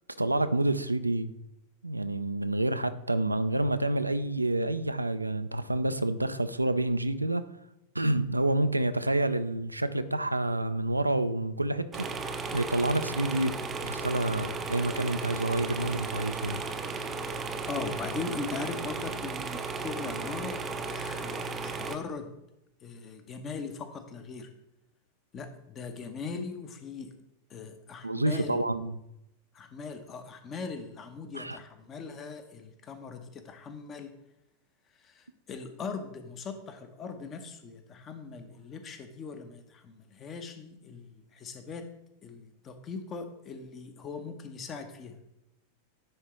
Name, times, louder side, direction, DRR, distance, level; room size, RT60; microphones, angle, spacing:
voice 1, 0.2-1.3 1.8-7.4 7.9-13.6 13.8-16.6 28.0-29.0 31.3-31.6, right 1 dB, 85° right, 11 dB, 0.3 m, -28 dB
sound 1, 11.9-22.0, right 4 dB, 20° right, 0.5 m, -35 dB
voice 2, 17.7-22.3 22.8-24.5 25.3-27.1 27.5-28.6 29.5-34.1 34.9-41.8 42.2-45.1, left 4 dB, 30° left, 8 dB, 0.8 m, -40 dB
9.7 x 3.7 x 3.2 m, 0.85 s
figure-of-eight pair, 90°, 0 cm